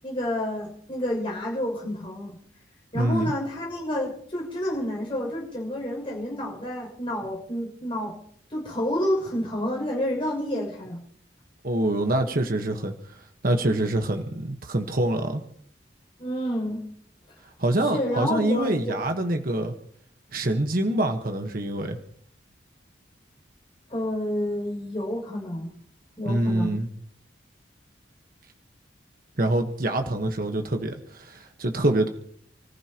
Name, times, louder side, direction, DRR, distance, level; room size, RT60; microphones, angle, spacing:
voice 1, 0.0-2.4 2.9-8.2 8.5-11.0 16.2-16.9 17.8-19.0 23.9-25.7 26.2-26.8, left 1 dB, 30° left, -2 dB, 6.6 m, -29 dB
voice 2, 2.9-3.3 11.6-12.9 13.4-15.4 17.6-19.7 20.3-22.0 26.2-26.9 29.4-32.1, right 1 dB, 50° right, 4 dB, 1.4 m, -25 dB
30.0 x 15.0 x 3.0 m, 0.65 s
head